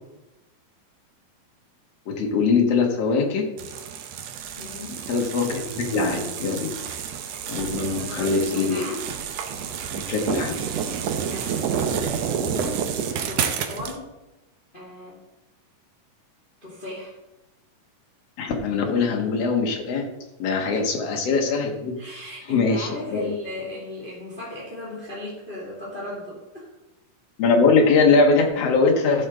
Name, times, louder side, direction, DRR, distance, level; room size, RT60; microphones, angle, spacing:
voice 1, 2.1-3.5 5.1-6.7 7.5-8.8 9.9-10.6 18.4-20.1 20.4-22.0 22.5-23.3 27.4-29.3, left 4 dB, 55° left, 2 dB, 2.2 m, -22 dB
sound 1, 3.6-14.0, right 7 dB, 70° right, 1.6 m, -29 dB
voice 2, 4.6-5.1 7.9-9.0 11.3-12.9 13.3-14.1 14.7-15.2 16.6-17.1 20.7-20.9 22.0-26.7, left 2 dB, 15° left, -5 dB, 2.2 m, -36 dB
14.0 x 6.4 x 3.8 m, 1.0 s
omnidirectional pair, 3.9 m